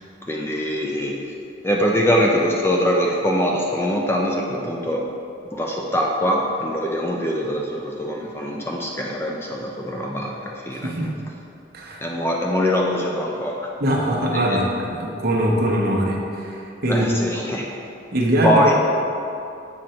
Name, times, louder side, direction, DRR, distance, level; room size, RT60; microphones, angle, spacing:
voice 1, 0.2-1.3 1.6-5.1 5.5-10.9 12.0-13.7 14.3-14.6 16.9-17.8 18.4-18.7, equal, 10° left, -1 dB, 0.5 m, -23 dB
voice 2, 10.7-11.1 11.7-12.0 13.8-17.1 18.1-18.7, right 1 dB, 50° right, -2 dB, 1.0 m, -22 dB
7.7 x 5.2 x 4.4 m, 2.7 s
head